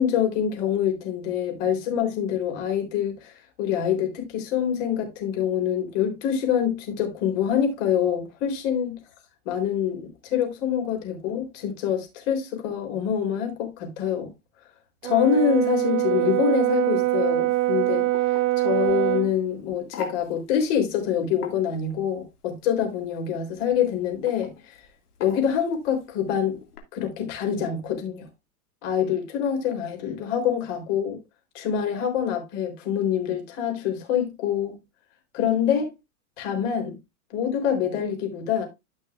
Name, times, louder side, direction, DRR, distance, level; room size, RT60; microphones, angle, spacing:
voice 1, 0.0-9.0 9.5-14.3 15.0-18.1 18.6-24.8 25.2-26.6 26.9-28.3 28.8-31.2 31.5-34.8 35.3-35.9 36.4-36.9 37.3-38.7, left 8 dB, 55° left, 3.7 m, -25 dB
Brass instrument, 15.0-19.3, right 18 dB, 35° right, 0.8 m, -23 dB
sound 1, 17.5-26.8, left 5 dB, 80° left, 2.2 m, -44 dB
13.0 x 5.5 x 2.4 m
hypercardioid pair, 115°, 45 cm